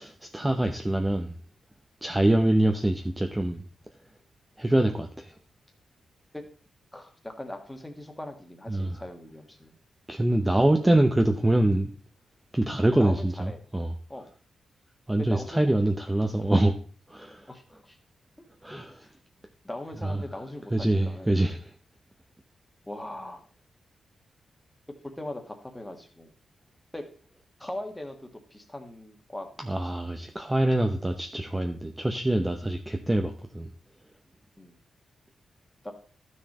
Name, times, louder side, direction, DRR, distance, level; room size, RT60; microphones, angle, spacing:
voice 1, 0.0-1.3 2.0-3.6 4.6-5.3 8.7-8.9 10.1-11.9 12.5-13.9 15.1-16.8 17.1-17.4 18.6-18.9 20.0-20.2 20.7-21.7 29.7-33.7, right 1 dB, 10° right, 0.8 m, -25 dB
voice 2, 6.9-9.7 11.4-11.5 12.9-13.6 14.1-14.3 15.2-15.7 17.5-18.0 18.4-18.5 18.7-19.1 19.6-21.3 22.9-23.4 25.0-26.3 26.9-27.0 27.6-29.5 29.8-30.3 32.6-32.7 34.6-34.8 35.8-35.9, left 1 dB, 10° left, 1.6 m, -40 dB
12.5 x 6.4 x 4.3 m
wide cardioid pair, 120°, 0 cm